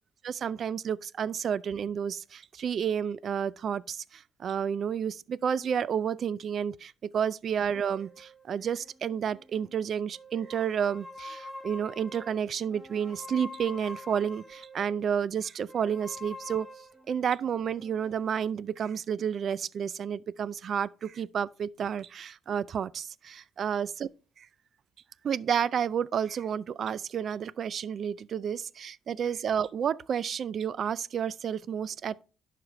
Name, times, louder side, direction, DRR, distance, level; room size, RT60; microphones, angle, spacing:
voice 1, 0.2-16.7 17.1-24.1 24.4-24.5 25.2-32.2, right 8 dB, 60° right, 0.3 m, -31 dB
sound 1, 7.7-9.7 10.1-15.0 15.7-18.3, left 1 dB, ahead, 1.2 m, -46 dB
11.0 x 5.0 x 3.1 m
cardioid pair, 90°, 0 cm